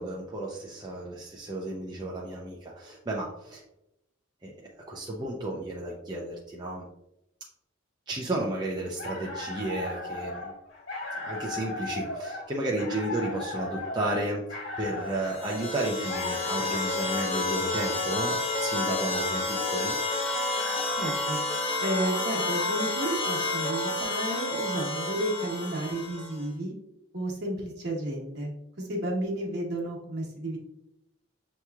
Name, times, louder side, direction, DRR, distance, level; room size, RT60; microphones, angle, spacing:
voice 1, 0.0-3.6 4.4-6.9 8.1-10.5 11.2-18.3 18.6-20.0, right 1 dB, 20° right, -2 dB, 0.4 m, -33 dB
sound 1, 8.8-21.2, left 2 dB, 55° left, 1.5 m, -38 dB
sound 2, 15.2-26.4, left 2 dB, 25° left, 0.6 m, -30 dB
voice 2, 20.9-21.4 21.8-26.7 27.1-28.5 28.8-30.6, right 1 dB, 55° right, -2 dB, 1.1 m, -32 dB
6.7 x 3.0 x 2.3 m, 0.84 s
head